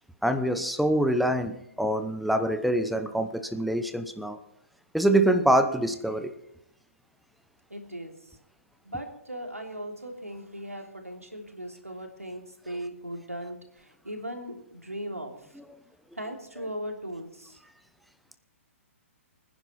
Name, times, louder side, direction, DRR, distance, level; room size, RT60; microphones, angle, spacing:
voice 1, 0.2-4.4 4.9-6.3, right 1 dB, ahead, 9 dB, 0.8 m, -25 dB
voice 2, 7.7-8.4 8.8-15.6 16.1-17.6, right 1 dB, 90° right, 3 dB, 3.1 m, -38 dB
24.5 x 10.0 x 4.5 m, 0.76 s
figure-of-eight pair, 120°, 8 cm